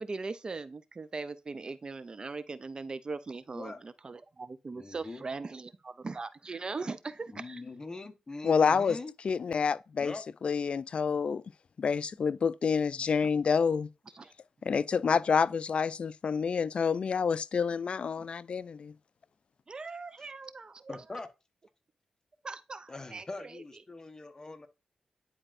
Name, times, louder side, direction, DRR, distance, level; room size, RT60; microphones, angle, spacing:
voice 1, 0.0-7.6 13.2-13.3 14.1-14.3 18.2-18.3 19.7-21.0 22.4-23.6, right 3 dB, 40° right, 0.4 m, -40 dB
voice 2, 4.7-5.2 7.3-9.1 10.0-10.2 20.9-21.3 22.9-24.7, left 3 dB, 30° left, 1.0 m, -42 dB
voice 3, 8.4-9.0 9.2-10.1 10.4-11.4 11.8-13.9 14.6-18.9, left 6 dB, 60° left, 0.3 m, -28 dB
9.9 x 4.3 x 2.5 m
cardioid pair, 70°, 2 cm